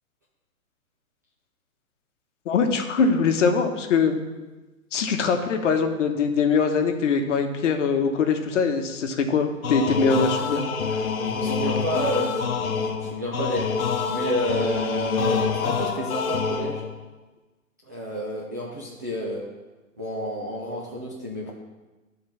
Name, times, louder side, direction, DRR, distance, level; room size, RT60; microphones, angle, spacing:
voice 1, 2.5-4.2 4.9-10.6 10.9-11.0, left 5 dB, 60° left, 6 dB, 1.1 m, -22 dB
sound 1, 9.6-17.0, left 6 dB, 85° left, 0.8 m, -27 dB
voice 2, 11.2-13.7 14.1-16.8 17.8-19.4 20.0-21.5, equal, 15° right, -5 dB, 0.3 m, -29 dB
10.5 x 3.9 x 5.6 m, 1.2 s
hypercardioid pair, 135°, 41 cm